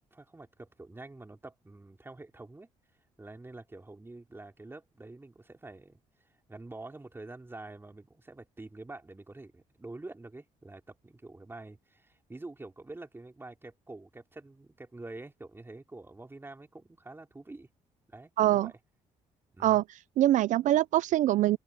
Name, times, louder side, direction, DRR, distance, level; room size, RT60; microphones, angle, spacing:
voice 1, 0.0-2.7 3.2-6.0 6.5-17.7 18.1-18.8 19.5-19.8, right 2 dB, 15° right, 3.5 m, -47 dB
voice 2, 18.4-18.7 19.6-19.8 20.2-21.6, right 14 dB, 70° right, 0.5 m, -23 dB
open air
cardioid pair, 85°, 13 cm